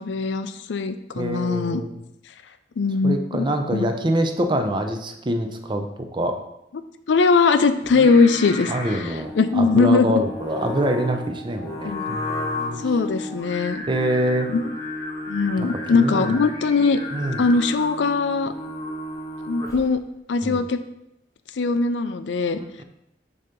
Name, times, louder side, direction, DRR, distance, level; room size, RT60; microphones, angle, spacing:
voice 1, 0.0-1.8 2.8-3.5 3.7-3.9 6.7-6.8 7.1-8.7 9.4-10.2 11.8-12.2 12.8-13.8 14.5-14.6 15.3-17.0 17.4-18.5 19.5-20.0 20.3-20.8 21.6-22.6, left 4 dB, 75° left, 11 dB, 0.4 m, -20 dB
voice 2, 1.2-2.0 3.0-5.9 6.1-6.4 8.7-12.8 13.9-14.5 15.6-15.7 15.9-16.4 17.1-17.4 20.4-20.6 22.6-22.8, right 1 dB, 25° right, 5 dB, 0.6 m, -25 dB
Singing, 7.8-20.0, left 1 dB, 20° left, 1.0 m, -33 dB
6.8 x 2.9 x 5.2 m, 0.83 s
head